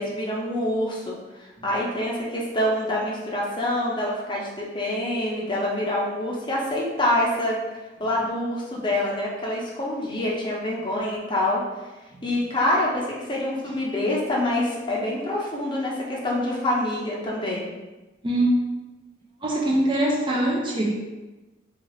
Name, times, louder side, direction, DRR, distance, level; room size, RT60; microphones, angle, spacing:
voice 1, 0.0-7.6 8.0-11.6 12.2-17.7, left 1 dB, 25° left, -3 dB, 0.6 m, -26 dB
voice 2, 18.2-18.6 19.4-21.0, right 1 dB, 30° right, -2 dB, 0.4 m, -22 dB
2.8 x 2.4 x 3.1 m, 1.1 s
head